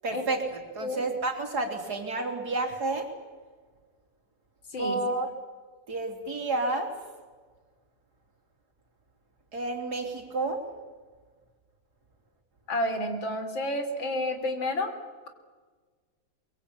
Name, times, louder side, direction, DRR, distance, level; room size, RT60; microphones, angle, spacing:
voice 1, 0.0-0.4 0.8-3.1 4.8-5.3 5.9-6.9 9.5-10.6, right 2 dB, 55° right, 4 dB, 3.6 m, -30 dB
voice 2, 12.7-14.9, left 1 dB, 80° left, 7 dB, 4.0 m, -30 dB
23.5 x 22.5 x 8.5 m, 1.4 s
omnidirectional pair, 2.1 m